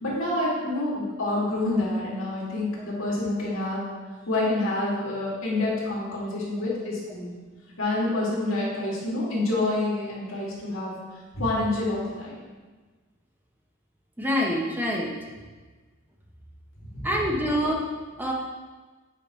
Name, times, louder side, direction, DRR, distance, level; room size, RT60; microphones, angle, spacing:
voice 1, 0.0-3.8 4.3-7.3 7.8-10.9 11.3-12.4 16.8-17.1, left 2 dB, 75° left, -5 dB, 2.2 m, -27 dB
voice 2, 14.2-15.1 17.0-17.8 18.2-18.3, equal, 10° right, -2 dB, 0.7 m, -26 dB
8.7 x 4.7 x 3.1 m, 1.3 s
head